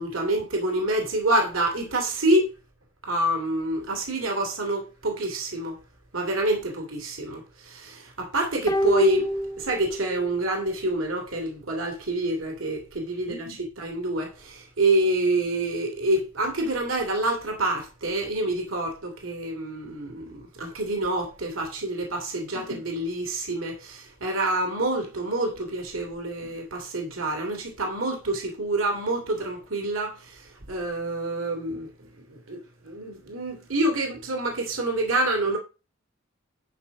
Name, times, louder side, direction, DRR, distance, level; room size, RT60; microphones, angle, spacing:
voice 1, 0.0-2.5 3.0-5.8 6.1-35.6, right 1 dB, 80° right, 2.8 m, -27 dB
sound 1, 8.7-10.3 10.6-10.7, equal, 20° left, 0.7 m, -26 dB
11.5 x 4.0 x 6.0 m
head